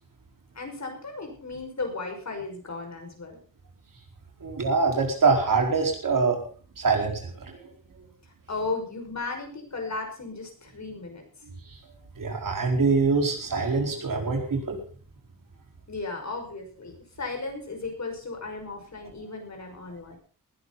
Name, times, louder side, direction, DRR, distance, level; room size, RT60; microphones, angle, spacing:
voice 1, 0.5-3.4 8.5-11.2 14.0-14.1 15.9-20.2, left 3 dB, 50° left, 3 dB, 5.7 m, -35 dB
voice 2, 4.4-6.4 6.8-7.7 11.4-11.8 12.2-14.8, right 4 dB, 65° right, 2 dB, 4.6 m, -24 dB
19.5 x 11.0 x 4.1 m, 0.42 s
wide cardioid pair, 90°, 34 cm